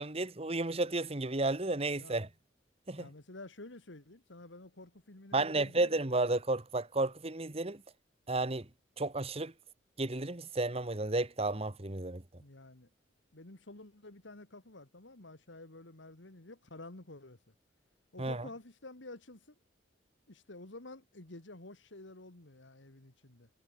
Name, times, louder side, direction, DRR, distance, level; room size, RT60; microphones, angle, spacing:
voice 1, 0.0-2.3 2.9-3.1 5.3-7.8 8.3-8.7 9.0-9.5 10.0-12.2 18.2-18.5, right 2 dB, 35° right, 1.4 m, -32 dB
voice 2, 3.0-6.0 12.4-12.9 13.3-17.5 18.1-19.6 20.3-23.5, left 2 dB, 85° left, 2.4 m, -50 dB
head